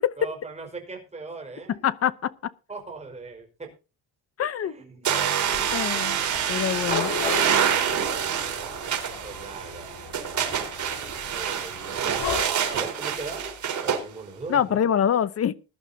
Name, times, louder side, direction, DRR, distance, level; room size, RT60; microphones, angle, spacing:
voice 1, 0.2-1.8 2.7-3.7 4.6-5.2 5.5-6.0 8.0-10.0 10.9-13.6 13.8-14.9, right 3 dB, 15° right, 5.0 m, -40 dB
voice 2, 1.7-2.5 4.4-4.7 5.7-6.2 6.5-7.1 14.5-15.5, left 9 dB, 35° left, 0.8 m, -25 dB
sound 1, 5.1-14.0, right 8 dB, 40° right, 4.2 m, -27 dB
Dog / Cat, 5.4-12.5, left 6 dB, 60° left, 3.9 m, -36 dB
20.5 x 11.5 x 2.8 m
cardioid pair, 145°, 44 cm